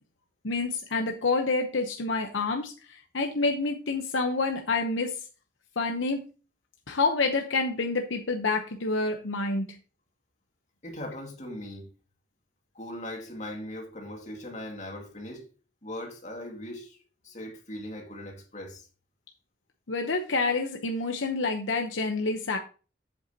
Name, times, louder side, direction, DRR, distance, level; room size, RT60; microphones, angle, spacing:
voice 1, 0.4-5.2 5.8-6.2 6.9-9.8 19.9-22.6, left 3 dB, 75° left, 0.9 m, -28 dB
voice 2, 10.8-11.9 12.7-15.5 15.8-18.9, left 1 dB, 40° left, 2.2 m, -39 dB
8.1 x 7.9 x 2.8 m
head